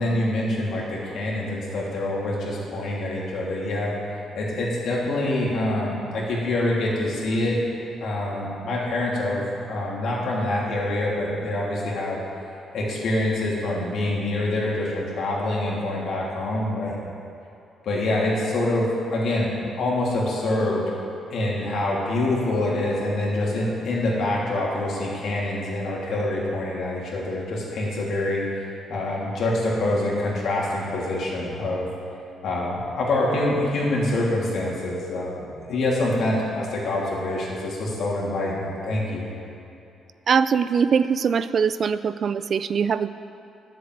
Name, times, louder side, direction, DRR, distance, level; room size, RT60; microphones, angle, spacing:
voice 1, 0.0-3.9 4.3-7.6 8.0-9.4 9.7-12.2 12.7-17.0 17.8-19.5 19.8-20.9 21.3-31.8 32.4-39.3, left 1 dB, 65° left, -4 dB, 3.1 m, -25 dB
voice 2, 40.3-43.1, right 6 dB, 50° right, 13 dB, 0.4 m, -22 dB
10.5 x 7.6 x 7.9 m, 2.6 s
cardioid pair, 90°, 0 cm